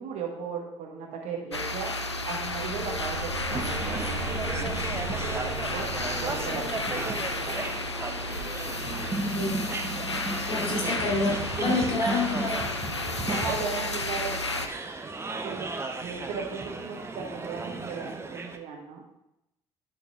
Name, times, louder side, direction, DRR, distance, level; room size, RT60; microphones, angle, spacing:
voice 1, 0.0-1.9 2.2-4.7 5.1-5.9 6.2-7.7 13.3-14.3 15.4-15.7 16.0-19.0, right 5 dB, 55° right, 0 dB, 1.5 m, -36 dB
sound 1, 1.5-14.7, left 2 dB, 90° left, 0.4 m, -32 dB
sound 2, 2.2-8.8, right 3 dB, 75° right, 1.4 m, -39 dB
sound 3, 3.5-18.6, right 3 dB, 20° right, 0.8 m, -35 dB
voice 2, 9.3-9.6 10.5-12.7, left 3 dB, 45° left, -2 dB, 2.7 m, -28 dB
11.0 x 4.7 x 3.6 m, 0.86 s
figure-of-eight pair, 50°, 14 cm